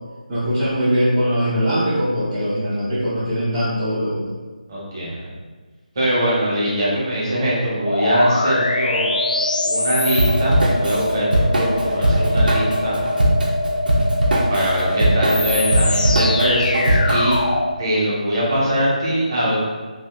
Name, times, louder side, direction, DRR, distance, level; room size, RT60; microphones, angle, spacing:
voice 1, 0.3-4.3, equal, 10° right, -13 dB, 0.3 m, -21 dB
voice 2, 4.7-5.2 5.9-9.1 9.6-13.0 14.5-17.4 17.8-19.6, equal, 25° right, -7 dB, 0.8 m, -22 dB
sound 1, 7.8-17.8, left 2 dB, 70° left, 0.3 m, -23 dB
Drum kit / Drum, 10.1-17.5, right 1 dB, 85° right, 0.7 m, -20 dB
2.7 x 2.5 x 3.2 m, 1.4 s
figure-of-eight pair, 175°, 5 cm